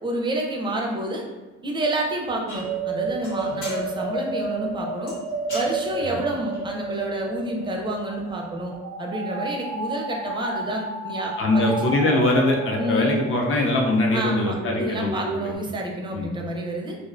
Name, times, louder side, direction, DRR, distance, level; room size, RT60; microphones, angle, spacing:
voice 1, 0.0-1.2 1.6-5.1 5.5-11.7 12.8-13.2 14.1-17.0, right 1 dB, 15° right, 0 dB, 0.4 m, -29 dB
sound 1, 2.3-15.6, right 3 dB, 75° right, 0.5 m, -32 dB
sound 2, 2.5-8.8, left 1 dB, 85° left, 1.1 m, -43 dB
voice 2, 11.4-15.5 16.1-16.3, left 2 dB, 45° left, 0 dB, 0.6 m, -22 dB
2.3 x 2.1 x 2.4 m, 1.2 s
cardioid pair, 90°, 30 cm